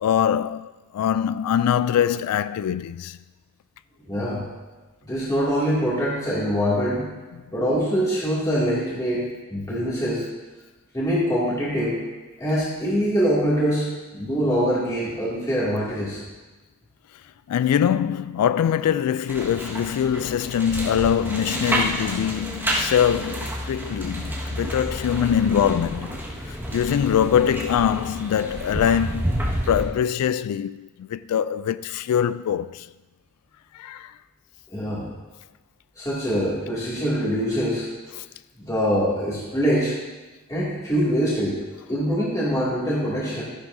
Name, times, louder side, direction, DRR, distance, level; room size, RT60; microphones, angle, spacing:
voice 1, 0.0-3.2 17.5-26.1 26.5-29.4 29.7-32.9 33.7-34.1 38.2-38.3, left 9 dB, 85° left, 0.3 m, -23 dB
voice 2, 4.0-4.4 5.0-7.0 7.5-10.2 10.9-12.0 12.4-16.2 34.7-35.1 36.0-37.9 38.6-39.9 40.5-41.6 41.9-43.4, equal, 15° left, 2.4 m, -24 dB
sound 1, 19.3-29.8, equal, 10° right, 1.6 m, -29 dB
14.0 x 10.5 x 2.7 m
head